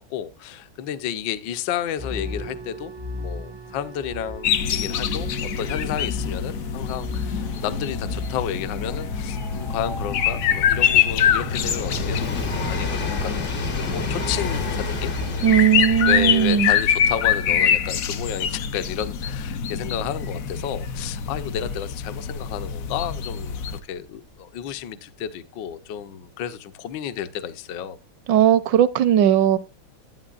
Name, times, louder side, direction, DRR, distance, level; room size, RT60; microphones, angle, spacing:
voice 1, 0.0-2.9 3.2-15.1 16.0-28.0, left 9 dB, 65° left, 1.3 m, -32 dB
sound 1, 2.0-16.4, left 1 dB, 25° right, 0.5 m, -37 dB
sound 2, 4.4-23.8, left 8 dB, 85° left, 0.7 m, -25 dB
Train, 7.1-22.7 23.7-23.8, left 3 dB, 45° left, 0.7 m, -34 dB
voice 2, 15.4-16.7 28.3-29.6, right 10 dB, 70° right, 1.1 m, -17 dB
11.5 x 9.1 x 2.4 m
omnidirectional pair, 2.4 m